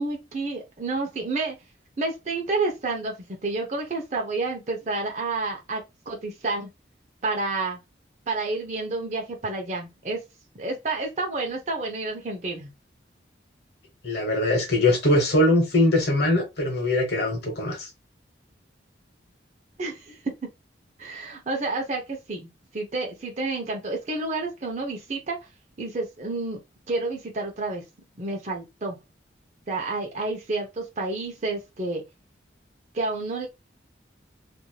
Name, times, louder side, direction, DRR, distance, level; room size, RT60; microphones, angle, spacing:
voice 1, 0.0-1.6 2.0-6.7 7.2-7.8 8.3-10.2 10.5-12.7 19.8-20.2 21.0-25.4 25.8-26.6 26.9-27.8 28.2-29.0 29.7-32.0 32.9-33.5, right 3 dB, 40° right, 0.7 m, -30 dB
voice 2, 14.0-17.9, left 1 dB, 60° left, 1.1 m, -22 dB
3.1 x 2.6 x 2.2 m
head